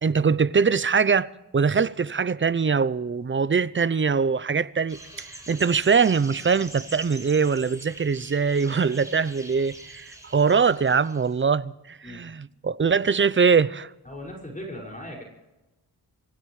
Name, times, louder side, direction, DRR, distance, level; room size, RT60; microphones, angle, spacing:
voice 1, 0.0-13.9, right 5 dB, 30° right, 0.6 m, -22 dB
sound 1, 4.9-11.4, right 1 dB, 10° right, 6.9 m, -44 dB
voice 2, 14.0-15.2, equal, 20° left, 5.9 m, -38 dB
27.5 x 15.5 x 3.2 m
cardioid pair, 65°, 42 cm